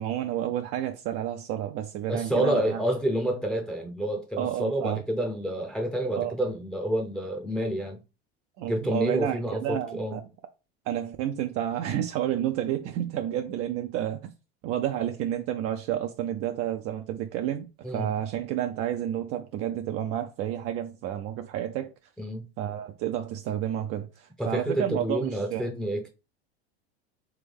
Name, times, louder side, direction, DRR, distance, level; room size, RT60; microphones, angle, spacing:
voice 1, 0.0-2.8 4.4-5.0 6.2-6.4 8.6-10.2 10.9-14.3 14.6-17.7 17.9-21.9 22.6-25.7, right 11 dB, 45° right, 0.5 m, -30 dB
voice 2, 2.1-8.0 8.7-10.2 17.8-18.1 22.2-22.4 24.4-26.1, right 1 dB, ahead, 0.6 m, -29 dB
3.5 x 3.4 x 3.4 m
hypercardioid pair, 100°, 33 cm